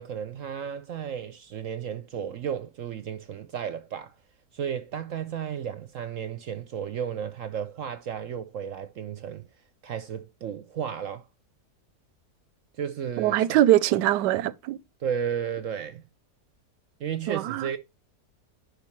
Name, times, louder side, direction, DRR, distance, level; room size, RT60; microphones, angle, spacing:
voice 1, 0.0-4.1 4.5-9.5 9.8-11.3 12.8-13.6 15.0-16.0 17.0-17.8, right 8 dB, 60° right, 0.9 m, -33 dB
voice 2, 13.2-14.8 17.3-17.7, right 14 dB, 90° right, 1.2 m, -22 dB
10.5 x 4.7 x 3.1 m
omnidirectional pair, 1.8 m